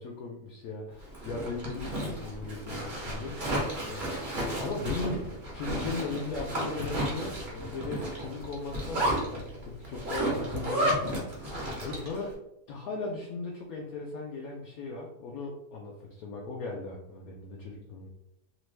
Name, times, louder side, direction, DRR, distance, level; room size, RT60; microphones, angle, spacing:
voice 1, 0.0-11.5 11.8-12.4 12.7-18.1, left 3 dB, 70° left, -1 dB, 0.9 m, -38 dB
Zipper (clothing), 1.0-12.2, right 1 dB, 40° right, 0.9 m, -33 dB
2.9 x 2.5 x 3.2 m, 0.81 s
omnidirectional pair, 1.7 m